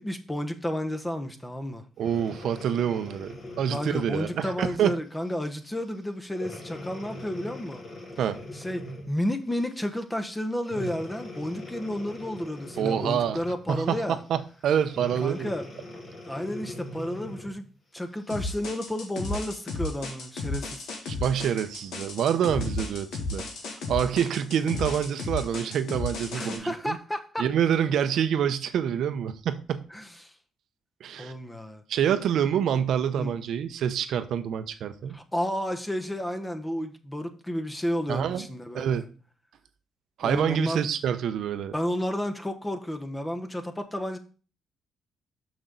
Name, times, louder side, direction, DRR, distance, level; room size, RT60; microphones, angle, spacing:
voice 1, 0.0-1.8 3.7-7.8 8.5-14.2 15.2-15.6 16.3-20.9 26.3-27.5 29.9-30.3 31.2-31.8 33.2-33.3 35.1-39.0 40.2-40.8 41.7-44.2, left 1 dB, 10° left, 1.0 m, -32 dB
Breathing, 2.0-4.6 5.3-5.5 6.3-9.2 10.6-13.5 14.9-17.6 18.2-18.3, left 1 dB, 45° left, 3.1 m, -41 dB
voice 2, 2.0-4.9 8.2-8.4 12.8-13.4 13.7-15.5 21.1-23.4 23.9-27.0 27.4-29.8 31.0-31.3 31.9-35.2 38.1-38.5 38.7-39.0 40.2-41.7, right 9 dB, 70° right, 0.7 m, -27 dB
sound 1, 18.3-26.6, left 2 dB, 80° left, 1.9 m, -33 dB
6.2 x 6.1 x 3.9 m
cardioid pair, 90°, 0 cm